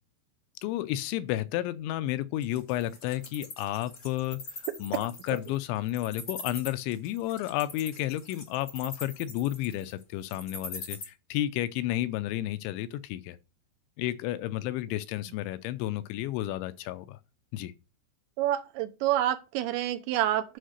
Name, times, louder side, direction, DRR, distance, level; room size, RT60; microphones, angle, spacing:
voice 1, 0.6-4.4 4.8-13.4 14.0-17.2 17.5-17.7, left 14 dB, 80° left, 2.9 m, -32 dB
Wild animals, 2.4-11.0, left 3 dB, 60° left, 0.9 m, -42 dB
voice 2, 18.4-20.6, right 12 dB, 80° right, 3.0 m, -28 dB
10.0 x 5.1 x 6.5 m
omnidirectional pair, 5.5 m